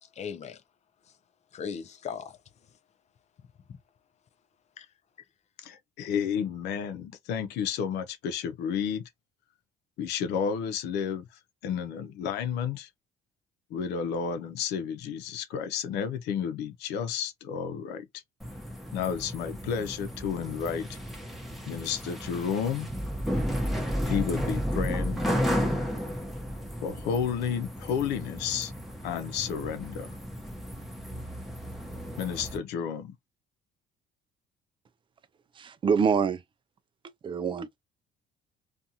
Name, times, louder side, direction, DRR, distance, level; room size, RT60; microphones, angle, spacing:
voice 1, 0.0-0.6 1.1-1.2 1.5-2.7 4.8-4.9, left 7 dB, 40° left, 0.5 m, -39 dB
voice 2, 5.6-9.1 10.0-11.2 11.6-12.9 13.7-18.1 18.9-20.9 21.7-22.9 24.0-25.2 26.8-28.7 29.0-30.2 32.2-33.1, left 7 dB, 85° left, 0.7 m, -31 dB
sound 1, 18.4-32.6, equal, ahead, 0.9 m, -33 dB
voice 3, 35.6-36.4 37.2-37.8, right 6 dB, 30° right, 0.4 m, -26 dB
2.5 x 2.4 x 2.8 m
cardioid pair, 110°, 17 cm